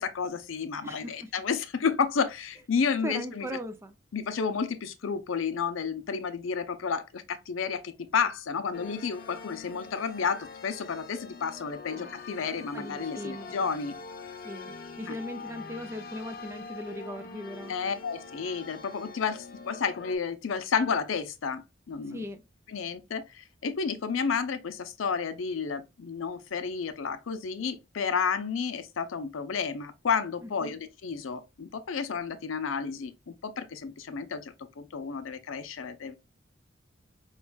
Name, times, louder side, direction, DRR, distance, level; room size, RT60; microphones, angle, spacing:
voice 1, 0.0-3.5 4.1-13.9 15.1-15.2 17.7-22.2 22.7-36.1, left 6 dB, 90° left, 0.5 m, -31 dB
voice 2, 0.8-1.3 3.0-4.0 11.9-12.4 12.7-13.6 14.4-17.7 22.1-22.4 30.4-30.8, equal, 15° right, 0.3 m, -39 dB
sound 1, 8.7-20.2, left 4 dB, 45° left, 0.7 m, -44 dB
5.0 x 2.4 x 2.2 m
head